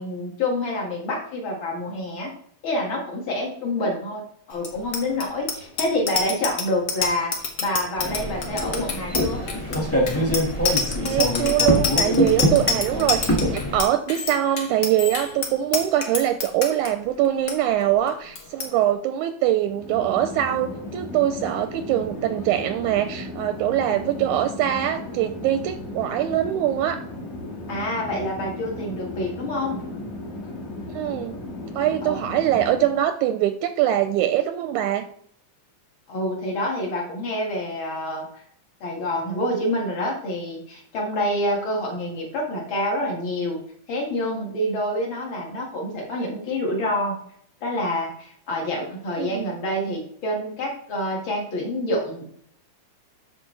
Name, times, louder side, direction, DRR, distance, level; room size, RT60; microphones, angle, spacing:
voice 1, 0.0-2.3 2.6-9.4 27.7-29.8 32.0-32.2 36.1-38.3 38.8-43.6 43.9-47.2 47.6-52.3, left 1 dB, 45° left, -1 dB, 2.3 m, -27 dB
Bicycle bell, 4.6-16.9 17.2-17.5 17.8-18.1 18.3-18.7, left 5 dB, 90° left, 0.8 m, -27 dB
sound 1, 8.0-13.8, equal, 15° left, 0.4 m, -24 dB
voice 2, 11.0-27.0 30.9-31.4 31.8-35.1 49.2-49.5, right 12 dB, 80° right, 8 dB, 1.9 m, -23 dB
Chatter / Fixed-wing aircraft airplane, 19.6-33.1, left 1 dB, 70° left, 3.1 m, -35 dB
12.5 x 4.9 x 3.2 m, 0.64 s
omnidirectional pair, 3.7 m